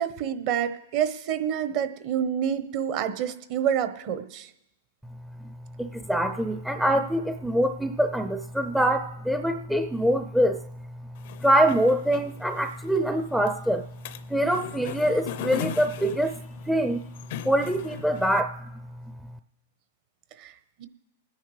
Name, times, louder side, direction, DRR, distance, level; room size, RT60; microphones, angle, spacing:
voice 1, 0.0-4.5 20.4-20.5 20.8-20.9, right 9 dB, 45° right, 10 dB, 1.0 m, -28 dB
voice 2, 5.8-10.6 11.4-13.8 14.3-16.4 16.7-17.0 17.4-18.6, right 1 dB, 5° right, 9 dB, 0.5 m, -24 dB
sound 1, 11.2-18.4, left 10 dB, 60° left, 0.5 m, -39 dB
26.5 x 10.0 x 3.2 m, 0.89 s
hypercardioid pair, 125°, 0 cm